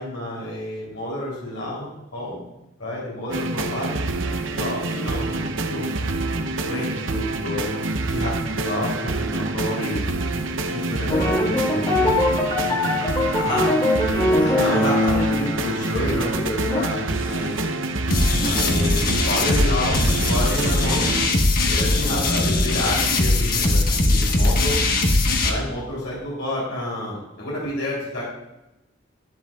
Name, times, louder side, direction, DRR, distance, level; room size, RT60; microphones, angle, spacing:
voice 1, 0.0-2.5 2.8-4.0 4.5-5.4 5.7-7.7 8.1-12.2 13.3-13.7 14.4-17.7 18.4-21.1 21.7-24.8 25.4-28.2, left 1 dB, 85° left, -5 dB, 3.4 m, -29 dB
sound 1, 3.3-21.3, right 2 dB, 80° right, 0.8 m, -27 dB
sound 2, 11.1-16.8, left 1 dB, 20° left, 1.8 m, -22 dB
sound 3, 18.1-25.5, left 2 dB, 50° left, 1.3 m, -20 dB
12.0 x 10.0 x 2.4 m, 0.98 s
head